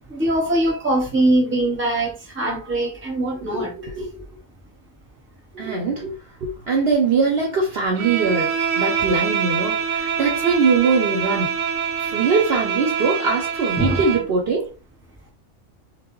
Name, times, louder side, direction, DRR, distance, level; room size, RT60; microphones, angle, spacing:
voice 1, 0.1-3.7 13.8-14.2, right 1 dB, 10° right, 0.7 m, -22 dB
voice 2, 3.5-4.3 5.5-11.6 12.0-14.7, right 4 dB, 60° right, 0.7 m, -22 dB
Bowed string instrument, 7.9-14.3, right 7 dB, 90° right, 1.0 m, -25 dB
2.1 x 2.1 x 3.5 m
omnidirectional pair, 1.4 m